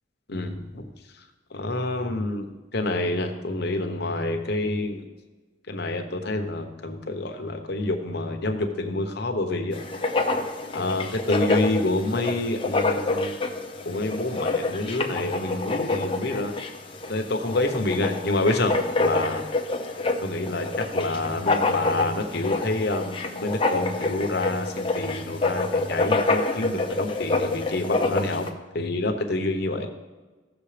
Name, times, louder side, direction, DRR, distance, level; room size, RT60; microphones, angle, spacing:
voice 1, 0.3-0.9 1.5-2.5 2.7-5.0 5.7-9.8 10.7-13.5 13.8-16.5 17.1-19.4 20.2-28.5 28.7-29.9, left 2 dB, 55° left, 4 dB, 1.0 m, -27 dB
Writing, 9.7-28.5, left 3 dB, 25° left, 0.7 m, -27 dB
15.5 x 6.7 x 3.4 m, 1.3 s
head